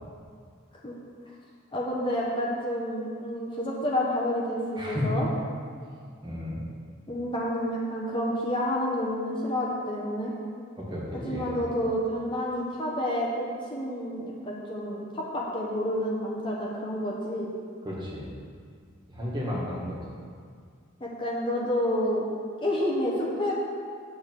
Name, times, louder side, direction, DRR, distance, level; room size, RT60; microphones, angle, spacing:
voice 1, 1.7-5.3 7.1-10.3 11.1-17.5 21.0-22.2 22.6-23.6, left 1 dB, 25° left, -4 dB, 1.1 m, -29 dB
voice 2, 4.8-5.2 6.2-6.7 10.8-11.5 17.8-18.3 19.1-20.0, left 1 dB, 25° right, -5 dB, 1.9 m, -32 dB
9.1 x 7.1 x 4.7 m, 2.1 s
head